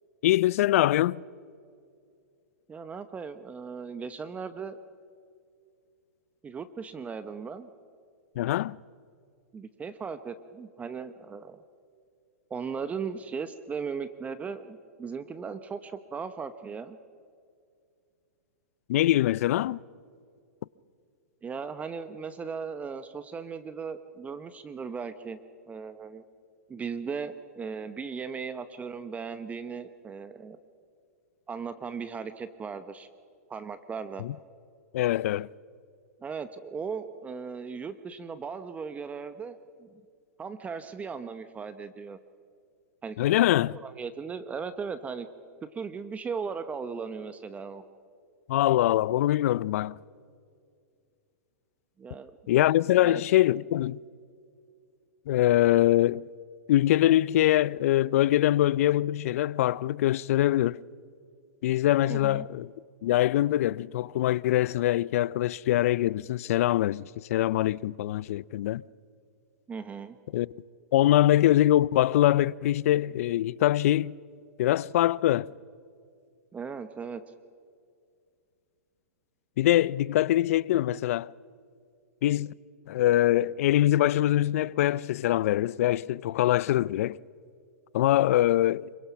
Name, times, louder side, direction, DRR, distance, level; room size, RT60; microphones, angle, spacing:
voice 1, 0.2-1.2 8.4-8.8 18.9-19.8 34.2-34.3 34.9-35.5 43.2-43.8 48.5-50.0 52.5-54.0 55.3-56.2 56.7-60.8 61.6-62.7 63.0-68.8 70.3-70.5 70.9-74.1 74.6-75.5 79.6-81.3 82.2-82.5 82.9-87.2 87.9-88.9, left 14 dB, 60° left, 0.5 m, -23 dB
voice 2, 2.7-4.8 6.4-7.7 9.5-11.6 12.5-17.0 21.4-25.4 25.7-26.2 26.7-30.6 31.5-33.1 33.5-34.2 36.2-39.9 40.4-42.2 43.0-43.2 43.7-45.3 45.7-47.8 52.0-52.3 53.0-53.2 62.1-62.5 69.7-70.2 76.5-77.2, right 5 dB, 15° right, 0.9 m, -37 dB
26.0 x 23.5 x 5.8 m
hypercardioid pair, 125°, 8 cm